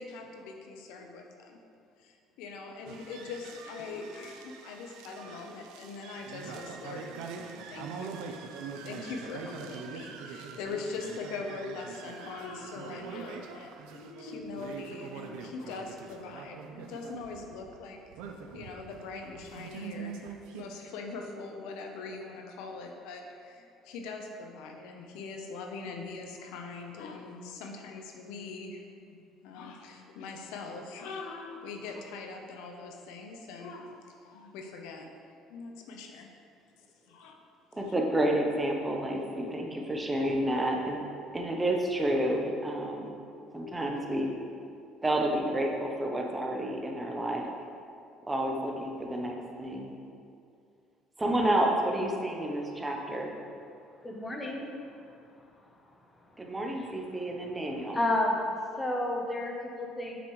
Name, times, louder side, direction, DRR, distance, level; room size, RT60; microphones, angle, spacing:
voice 1, 0.0-1.6 2.0-7.1 7.7-8.2 8.8-18.0 18.5-35.1 35.5-36.3 37.1-37.4 37.7-37.9, left 4 dB, 85° left, 3 dB, 0.8 m, -42 dB
sound 1, 2.9-20.6, right 5 dB, 85° right, 0.6 m, -44 dB
voice 2, 37.8-41.0 41.3-43.1 43.5-44.3 45.0-47.4 48.3-49.9 51.2-53.3 56.4-58.0, right 1 dB, 15° right, 1 dB, 0.8 m, -30 dB
voice 3, 54.0-54.7 57.9-58.4 58.8-60.2, left 1 dB, 15° left, 0 dB, 1.0 m, -30 dB
7.3 x 6.9 x 3.2 m, 2.4 s
cardioid pair, 130°, 0 cm